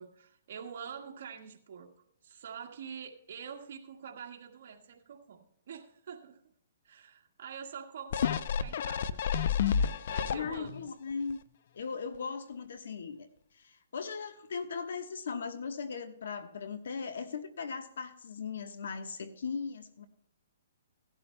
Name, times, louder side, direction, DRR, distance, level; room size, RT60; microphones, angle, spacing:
voice 1, 0.0-1.9 2.2-6.4 6.8-9.2 10.1-10.9, right 7 dB, 55° right, 1 dB, 1.7 m, -46 dB
sound 1, 8.1-10.8 11.3-11.4, left 7 dB, 55° left, 0.5 m, -30 dB
voice 2, 10.3-11.4 11.7-13.3 13.5-20.1, left 5 dB, 75° left, 9 dB, 1.2 m, -38 dB
17.0 x 12.0 x 2.2 m, 0.71 s
hypercardioid pair, 160°, 0 cm